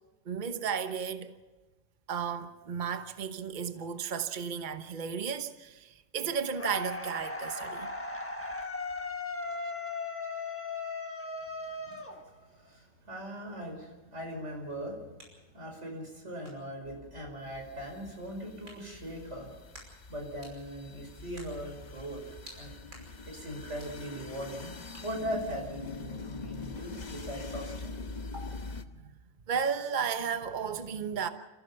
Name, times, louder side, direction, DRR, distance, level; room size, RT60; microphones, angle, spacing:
voice 1, 0.3-1.3 2.1-7.9 28.9-29.1 29.5-31.3, right 7 dB, 40° right, 1.1 m, -34 dB
sound 1, 6.6-12.7, left 3 dB, 10° left, 1.4 m, -37 dB
voice 2, 12.5-15.0 15.5-19.5 20.1-22.2 22.5-22.7 23.3-24.7 25.0-27.9, equal, 55° right, 5.6 m, -40 dB
sound 2, 14.5-27.8, right 1 dB, 80° right, 6.1 m, -59 dB
sound 3, 16.8-28.8, left 3 dB, 35° left, 1.1 m, -44 dB
29.0 x 15.5 x 5.8 m
omnidirectional pair, 1.4 m